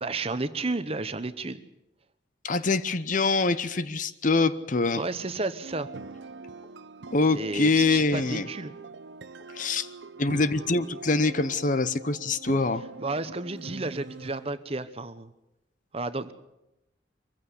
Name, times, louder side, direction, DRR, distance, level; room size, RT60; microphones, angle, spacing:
voice 1, 0.0-1.6 4.9-5.9 7.3-8.7 13.0-15.3 15.9-16.3, right 2 dB, 35° right, 12 dB, 1.0 m, -32 dB
voice 2, 2.4-5.0 7.1-8.5 9.5-9.9 10.2-12.8, left 3 dB, 45° left, 14 dB, 0.8 m, -24 dB
sound 1, 5.6-14.6, right 3 dB, 75° right, 0.7 m, -43 dB
23.5 x 15.0 x 8.3 m, 0.91 s
head